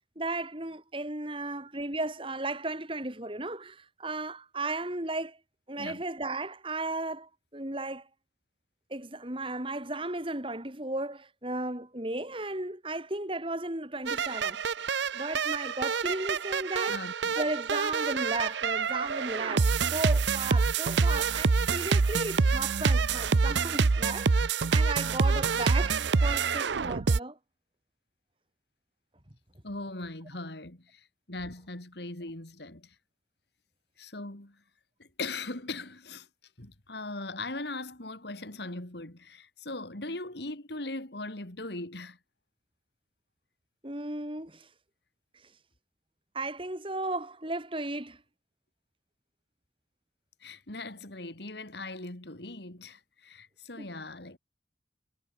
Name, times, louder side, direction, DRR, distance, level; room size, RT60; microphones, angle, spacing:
voice 1, 0.1-5.4 5.7-8.1 8.9-14.6 15.1-17.0 17.4-24.3 24.7-27.4 43.8-44.7 46.3-48.2 53.8-53.9, right 2 dB, 30° right, 3.2 m, -35 dB
sound 1, 14.1-27.2, right 4 dB, 70° right, 0.6 m, -27 dB
voice 2, 16.9-17.4 29.6-32.9 34.0-34.6 35.0-36.3 36.6-42.2 50.4-54.4, left 2 dB, 60° left, 2.8 m, -40 dB
head